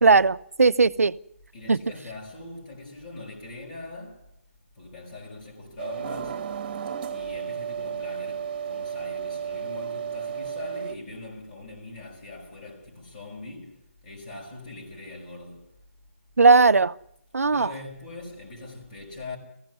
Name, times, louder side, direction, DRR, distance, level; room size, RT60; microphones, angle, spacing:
voice 1, 0.0-1.1 1.7-1.8 16.4-16.9 17.3-17.7, right 4 dB, 80° right, 0.8 m, -18 dB
voice 2, 1.5-4.3 4.7-6.5 7.1-15.7 17.5-19.4, left 2 dB, 35° left, 6.0 m, -42 dB
sound 1, 5.8-10.9, right 7 dB, 35° right, 1.7 m, -33 dB
19.0 x 16.0 x 9.4 m
figure-of-eight pair, 155°, 8 cm